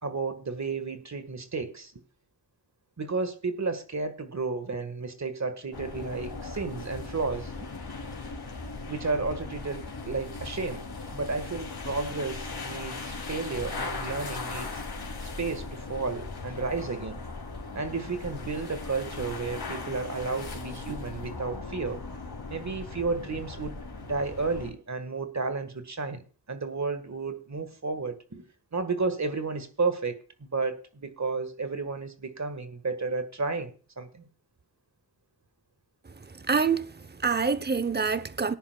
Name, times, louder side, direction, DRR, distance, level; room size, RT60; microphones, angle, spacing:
voice 1, 0.0-1.9 3.0-7.5 8.9-10.8 11.1-14.8 15.4-17.2 17.7-22.0 22.5-28.4 28.7-34.3, right 4 dB, 40° right, 1.7 m, -32 dB
sound 1, 5.7-24.7, left 3 dB, 60° left, 2.9 m, -38 dB
voice 2, 36.5-38.6, right 5 dB, 25° right, 0.8 m, -26 dB
19.0 x 10.0 x 2.3 m
cardioid pair, 60°, 44 cm